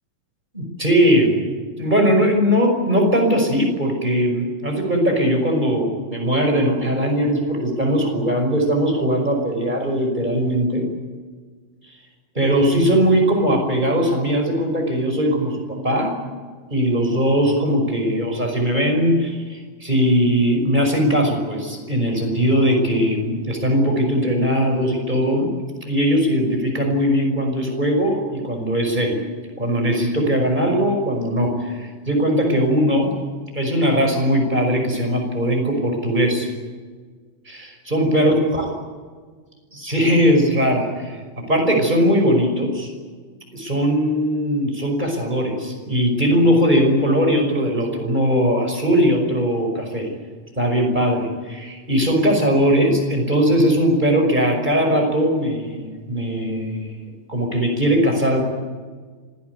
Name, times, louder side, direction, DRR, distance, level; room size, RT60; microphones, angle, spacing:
voice 1, 0.5-1.4 1.8-10.9 12.3-16.2 16.7-25.5 25.8-29.2 29.6-33.2 33.5-36.5 37.5-38.7 39.7-42.9 43.5-50.1 50.6-57.0 57.3-58.4, equal, 10° right, 2 dB, 5.6 m, -20 dB
26.0 x 18.0 x 9.6 m, 1.5 s
omnidirectional pair, 4.0 m